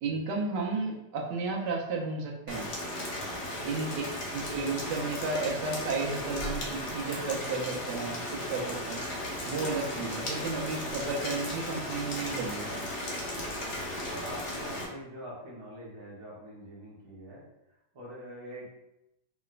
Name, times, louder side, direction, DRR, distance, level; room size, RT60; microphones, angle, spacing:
voice 1, 0.0-2.7 3.6-4.0 4.3-8.2 8.5-9.0 9.4-12.8, right 3 dB, 90° right, -1 dB, 1.3 m, -33 dB
Rain, 2.5-14.8, left 1 dB, 70° left, 0.5 m, -36 dB
voice 2, 3.1-3.7 4.0-4.1 13.7-17.4 17.9-18.7, equal, 25° right, -6 dB, 0.6 m, -45 dB
3.1 x 2.9 x 2.4 m, 0.89 s
omnidirectional pair, 1.8 m